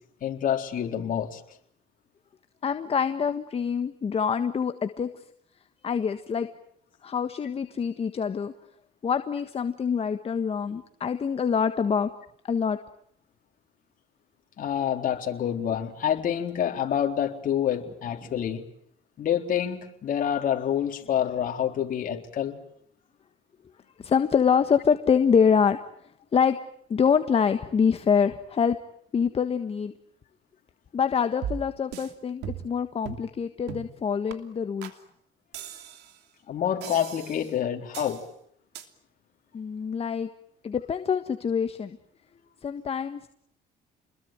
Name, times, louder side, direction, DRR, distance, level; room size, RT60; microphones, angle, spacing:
voice 1, 0.2-1.4 14.6-18.6 19.2-22.6 36.5-38.2, left 9 dB, 55° left, 3 dB, 3.9 m, -27 dB
voice 2, 2.6-5.2 5.8-6.5 7.0-8.5 9.0-12.1 12.5-12.8 18.2-18.3 24.0-25.8 26.3-26.6 26.9-28.8 29.1-29.9 30.9-34.9 39.5-40.3 40.6-42.0 42.6-43.3, left 6 dB, 35° left, 9 dB, 1.5 m, -25 dB
sound 1, 31.4-32.1 32.4-32.8 33.0-33.3 33.7-33.9 34.3-34.4 34.8-35.0 35.5-36.2 36.8-37.5 37.9-38.2 38.7-38.9, right 9 dB, 85° right, 2.9 m, -38 dB
29.0 x 21.5 x 9.1 m, 0.66 s
cardioid pair, 110°, 17 cm